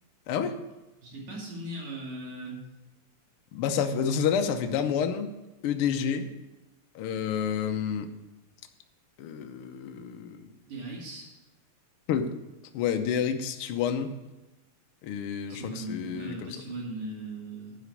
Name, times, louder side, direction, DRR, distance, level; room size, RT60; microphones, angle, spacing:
voice 1, 0.3-0.6 3.5-5.3 5.6-6.3 6.9-8.1 9.2-10.5 12.1-12.3 12.7-14.1 15.0-16.6, left 7 dB, 70° left, 6 dB, 1.3 m, -29 dB
voice 2, 1.0-2.6 10.7-11.3 15.5-17.8, right 1 dB, 80° right, -4 dB, 3.8 m, -38 dB
11.5 x 5.0 x 8.3 m, 1.0 s
omnidirectional pair, 3.3 m